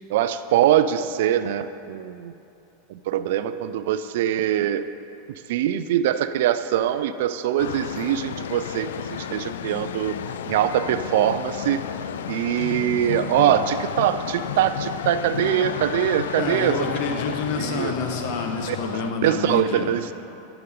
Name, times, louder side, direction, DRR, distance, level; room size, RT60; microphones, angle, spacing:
voice 1, 0.1-2.3 2.9-4.9 5.5-10.2 10.5-11.8 12.3-16.9 17.6-17.9 18.7-20.1, right 11 dB, 65° right, 12 dB, 0.4 m, -23 dB
sound 1, 7.6-19.1, left 9 dB, 75° left, 0.3 m, -32 dB
voice 2, 16.4-19.9, left 4 dB, 55° left, 3 dB, 1.3 m, -28 dB
12.0 x 7.9 x 3.8 m, 2.8 s
hypercardioid pair, 90°, 0 cm